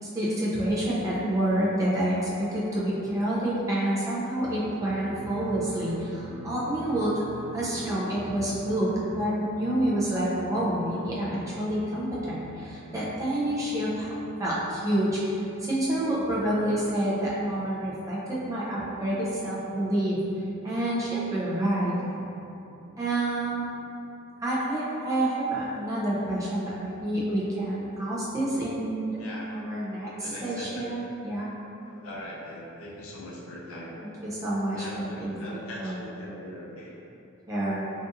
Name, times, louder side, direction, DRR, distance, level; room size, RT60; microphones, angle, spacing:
voice 1, 0.1-7.2 7.5-14.1 14.4-15.2 15.6-20.2 20.6-22.0 23.0-23.6 24.4-29.2 29.5-31.5 33.9-36.0 37.5-37.8, right 1 dB, 15° right, -8 dB, 0.5 m, -28 dB
sound 1, 4.4-24.1, right 1 dB, 85° right, 0.4 m, -47 dB
voice 2, 29.2-29.5 30.2-30.9 31.9-34.0 34.7-36.9, left 1 dB, 75° left, -4 dB, 0.5 m, -41 dB
3.8 x 2.4 x 2.5 m, 2.8 s
head